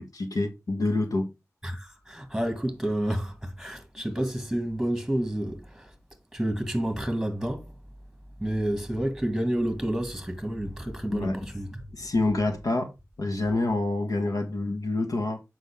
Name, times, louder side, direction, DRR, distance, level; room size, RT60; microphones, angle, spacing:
voice 1, 0.0-1.3 11.1-11.5 11.9-12.9 13.2-15.4, left 2 dB, 85° left, 1.5 m, -27 dB
voice 2, 1.6-5.9 6.3-7.8 8.4-11.8, right 1 dB, 5° right, 2.1 m, -29 dB
7.6 x 5.5 x 3.6 m
wide cardioid pair, 65°, 6 cm